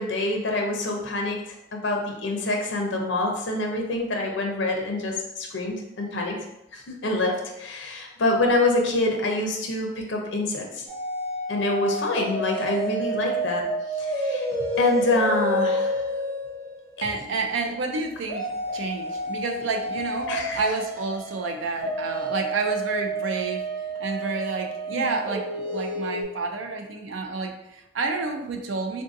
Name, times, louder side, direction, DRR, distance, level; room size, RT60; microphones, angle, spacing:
voice 1, 0.0-6.4 6.7-10.8 11.5-13.7 14.0-14.5 14.8-16.1 17.0-17.1 20.3-20.6 24.9-25.1, left 2 dB, 65° left, 1 dB, 0.6 m, -26 dB
sound 1, 10.9-17.1 18.3-26.2, right 1 dB, 50° right, 1.1 m, -29 dB
voice 2, 17.0-23.6 24.0-29.0, right 3 dB, 75° right, 4 dB, 0.4 m, -29 dB
3.6 x 2.6 x 2.5 m, 0.86 s
head